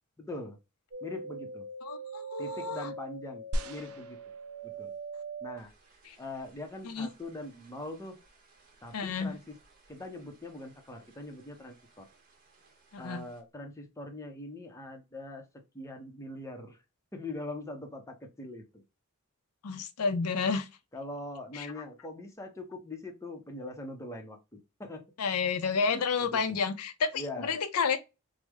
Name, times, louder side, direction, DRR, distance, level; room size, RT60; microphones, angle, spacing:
voice 1, 0.2-0.6 1.0-1.7 2.4-4.2 4.6-5.0 5.4-5.7 6.2-8.2 8.8-9.6 9.9-12.1 13.0-15.5 15.7-16.8 17.1-18.8 20.9-25.0 25.9-26.6 27.1-27.6, left 2 dB, 15° left, 0.6 m, -42 dB
sound 1, 0.9-10.3 10.6-11.4 11.8-12.7 13.1-13.2, right 3 dB, 40° right, 1.1 m, -44 dB
voice 2, 1.8-2.9 6.0-6.2 6.8-7.1 8.9-9.3 12.9-13.2 19.6-20.7 21.5-21.7 25.2-28.0, left 5 dB, 85° left, 0.5 m, -30 dB
sound 2, 3.5-5.0 5.8-5.9, equal, 70° right, 0.6 m, -37 dB
3.2 x 2.1 x 3.4 m
head